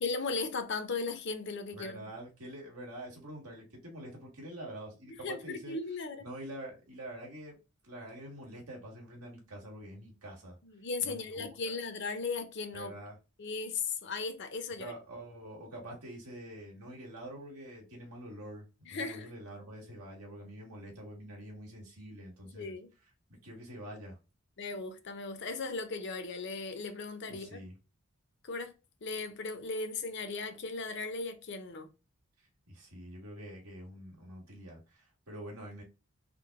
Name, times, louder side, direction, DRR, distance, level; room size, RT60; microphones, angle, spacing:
voice 1, 0.0-2.1 5.2-6.3 10.6-12.9 13.4-14.9 18.9-19.3 22.5-22.9 24.6-27.6 28.4-28.7 29.0-31.9, left 4 dB, 50° left, 0.5 m, -37 dB
voice 2, 1.7-5.8 6.2-7.6 7.8-10.6 11.0-11.8 12.7-13.2 14.8-22.7 23.4-24.2 27.3-27.8 32.7-35.8, right 1 dB, 90° right, 1.6 m, -46 dB
3.7 x 2.1 x 3.4 m
head